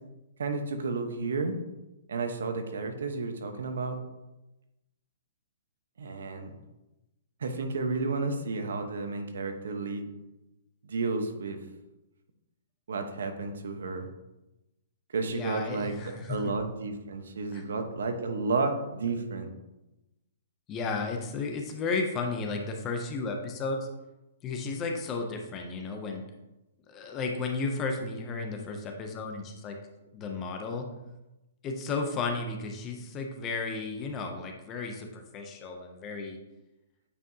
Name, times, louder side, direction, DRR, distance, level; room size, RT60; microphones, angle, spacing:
voice 1, 0.4-1.6 2.1-4.0 6.0-6.6 7.4-10.1 10.8-11.6 12.9-14.1 15.1-15.9 16.3-19.5, right 3 dB, 80° right, 6 dB, 1.0 m, -32 dB
voice 2, 15.3-16.5 17.5-17.6 20.7-23.8 24.4-26.2 26.9-29.7 30.1-30.9 31.6-36.4, left 4 dB, 15° left, 3 dB, 0.5 m, -33 dB
8.7 x 4.7 x 2.7 m, 0.98 s
hypercardioid pair, 180°, 0 cm